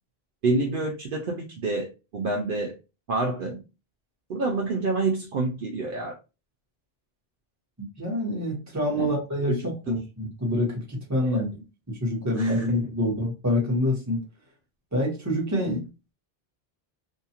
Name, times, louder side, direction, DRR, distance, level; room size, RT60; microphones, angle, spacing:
voice 1, 0.4-2.8 3.1-3.6 4.3-6.1 8.9-9.1 9.5-9.7 11.2-11.4 12.4-12.9 15.7-15.8, right 3 dB, 65° right, 0 dB, 0.7 m, -28 dB
voice 2, 7.8-11.5 11.9-14.2 14.9-15.8, left 1 dB, 15° right, -3 dB, 1.0 m, -26 dB
2.7 x 2.4 x 2.8 m, 0.29 s
omnidirectional pair, 1.0 m